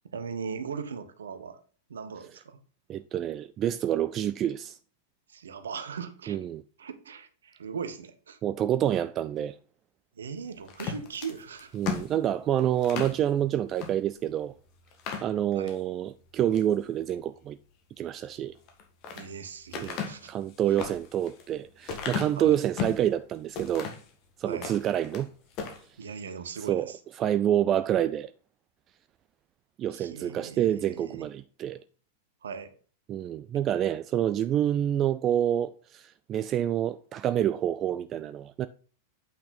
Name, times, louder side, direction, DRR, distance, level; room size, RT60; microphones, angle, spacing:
voice 1, 0.0-1.6 1.9-2.6 5.3-6.5 6.8-8.4 10.2-11.8 15.5-15.8 19.1-20.3 20.7-20.8 22.3-22.6 24.5-24.7 26.0-27.0 29.9-31.3 32.4-32.7, right 6 dB, 70° right, 1.1 m, -39 dB
voice 2, 2.9-4.7 6.3-6.6 8.4-9.5 11.7-14.5 15.2-17.6 18.0-18.6 19.8-23.9 24.4-25.3 26.7-26.9 27.2-28.3 29.8-31.8 33.1-38.7, right 11 dB, 30° right, 0.4 m, -27 dB
sound 1, 10.7-13.2 13.8-13.9 14.3-14.4 14.9-15.8 16.3-16.7 18.5-19.3 19.7-23.1 23.5-24.1 24.5-25.3 25.5-25.8, left 6 dB, 40° left, 1.8 m, -36 dB
8.7 x 5.9 x 4.0 m
figure-of-eight pair, 90°, 0 cm